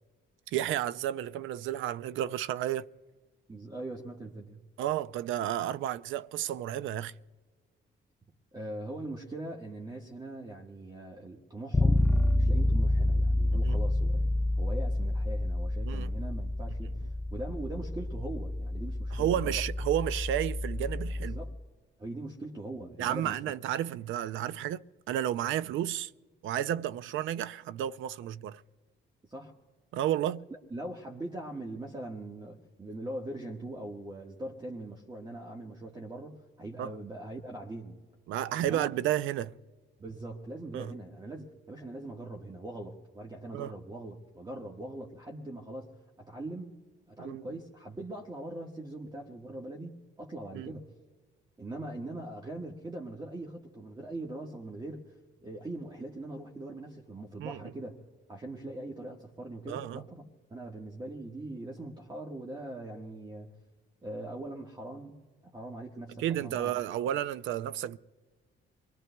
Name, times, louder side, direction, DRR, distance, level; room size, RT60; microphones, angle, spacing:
voice 1, 0.5-2.9 4.8-7.1 13.6-13.8 15.8-16.1 19.1-21.4 23.0-26.1 26.4-28.6 29.9-30.5 36.8-36.9 38.3-39.6 40.7-40.9 43.5-43.7 47.2-47.4 50.5-50.7 57.4-57.7 59.7-60.0 66.2-68.0, right 11 dB, 80° right, 0.5 m, -32 dB
voice 2, 3.5-4.7 8.5-14.3 14.6-19.6 21.2-21.5 22.0-23.4 25.6-25.7 29.3-29.5 30.5-38.0 38.6-38.9 40.0-46.8 47.1-50.9 51.6-55.2 55.4-58.0 58.3-63.5 64.0-65.2 65.4-66.8, right 1 dB, 20° right, 1.5 m, -41 dB
Bass guitar, 11.7-21.6, left 1 dB, 10° left, 0.5 m, -29 dB
28.5 x 21.5 x 2.3 m
cardioid pair, 90°, 20 cm